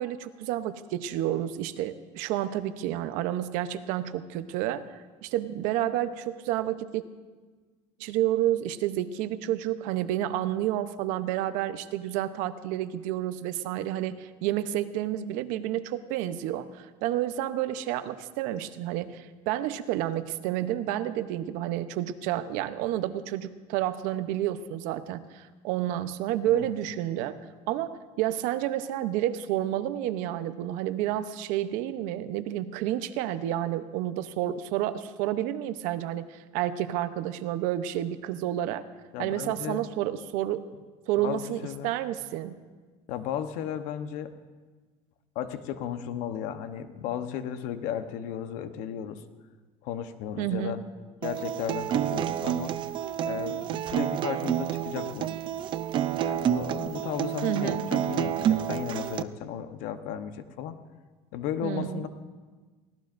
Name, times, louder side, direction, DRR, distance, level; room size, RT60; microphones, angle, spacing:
voice 1, 0.0-4.8 5.2-7.1 8.0-27.4 27.7-38.8 39.2-40.6 41.1-42.6 50.4-50.7 57.4-57.8 61.6-62.1, right 12 dB, 75° right, 11 dB, 0.8 m, -30 dB
voice 2, 39.1-39.8 41.2-41.9 43.1-44.3 45.3-49.2 49.8-50.8 51.2-52.8 53.2-55.3 56.2-60.8 61.3-62.1, left 9 dB, 70° left, 9 dB, 1.0 m, -35 dB
Acoustic guitar, 51.2-59.2, right 10 dB, 35° right, 0.4 m, -29 dB
23.5 x 17.0 x 2.6 m, 1.4 s
cardioid pair, 150°, 14 cm